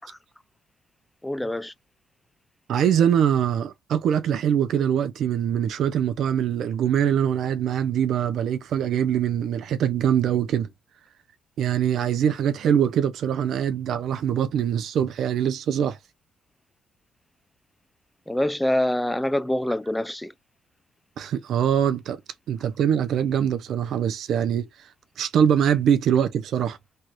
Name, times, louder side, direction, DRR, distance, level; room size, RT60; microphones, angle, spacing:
voice 1, 1.2-1.7 18.3-20.3, left 1 dB, 10° left, 0.4 m, -25 dB
voice 2, 2.7-10.7 11.6-16.0 21.2-22.2 22.5-24.7 25.2-26.8, right 9 dB, 70° right, 0.6 m, -23 dB
3.2 x 2.4 x 3.0 m
cardioid pair, 90°, 0 cm